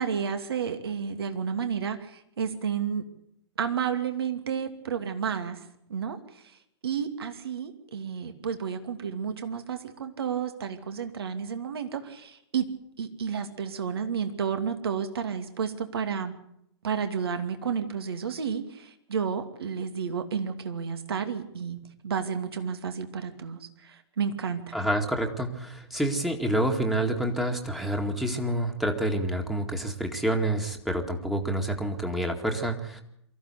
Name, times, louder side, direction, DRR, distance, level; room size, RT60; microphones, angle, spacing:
voice 1, 0.0-3.0 3.6-5.6 5.9-6.4 6.8-12.7 13.0-16.3 16.8-21.8 22.0-24.7, right 7 dB, 60° right, 8 dB, 2.7 m, -31 dB
voice 2, 24.7-33.0, right 1 dB, ahead, 3 dB, 2.2 m, -28 dB
23.5 x 15.0 x 8.3 m, 0.75 s
figure-of-eight pair, 110°, 14 cm